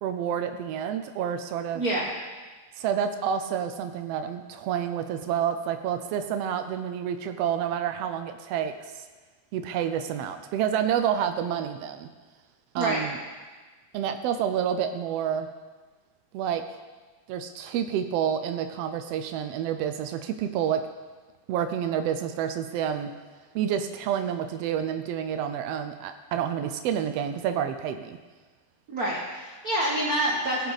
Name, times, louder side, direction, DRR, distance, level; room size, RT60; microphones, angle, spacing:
voice 1, 0.0-1.8 2.8-9.0 9.5-12.1 12.7-13.2 13.9-15.5 16.3-16.6 17.3-20.9 21.5-23.1 23.5-28.2, right 9 dB, 90° right, 7 dB, 1.4 m, -29 dB
voice 2, 1.7-2.1 12.8-13.0 28.9-30.7, right 1 dB, 60° right, -3 dB, 0.9 m, -27 dB
16.5 x 8.4 x 4.0 m, 1.3 s
omnidirectional pair, 3.5 m